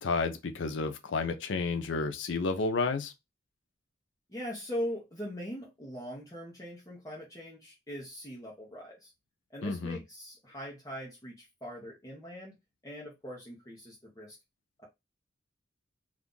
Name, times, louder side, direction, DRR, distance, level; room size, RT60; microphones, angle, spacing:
voice 1, 0.0-3.1 9.6-10.0, left 3 dB, 85° left, 0.5 m, -31 dB
voice 2, 4.3-9.1 9.5-12.5 12.8-14.3 14.8-14.9, equal, 20° left, 0.8 m, -41 dB
2.6 x 2.4 x 3.7 m
head